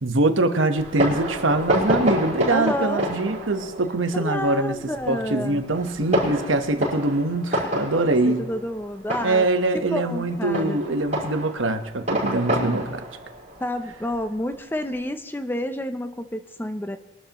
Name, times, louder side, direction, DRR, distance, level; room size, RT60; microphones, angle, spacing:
voice 1, 0.0-4.8 5.1-8.4 9.2-13.0, right 2 dB, 85° right, 7 dB, 1.2 m, -23 dB
Fireworks, 0.8-14.9, equal, 35° right, 5.3 m, -29 dB
voice 2, 2.5-3.1 4.1-5.6 7.5-7.9 8.3-9.4 9.9-10.8 13.6-17.0, left 1 dB, 10° left, 9 dB, 0.5 m, -29 dB
22.5 x 12.5 x 3.0 m, 1.1 s
head